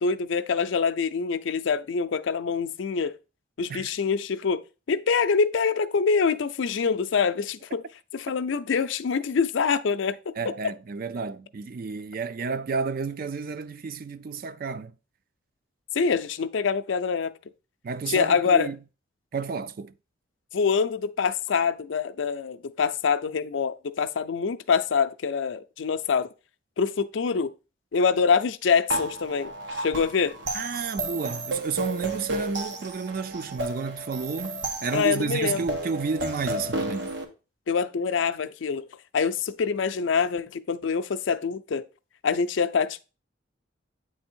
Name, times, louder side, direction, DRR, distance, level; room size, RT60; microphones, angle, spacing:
voice 1, 0.0-3.2 3.6-7.9 8.1-10.5 15.9-17.3 18.1-18.7 20.5-26.3 26.8-27.5 27.9-29.5 29.8-30.4 34.9-35.7 37.7-38.9 39.1-41.8 42.2-43.0, left 5 dB, 80° left, 0.5 m, -25 dB
voice 2, 10.4-14.9 17.8-18.8 19.3-19.9 30.5-37.1, right 5 dB, 50° right, 0.4 m, -31 dB
sound 1, 28.9-37.2, right 1 dB, 80° right, 1.1 m, -33 dB
8.5 x 3.4 x 4.4 m
head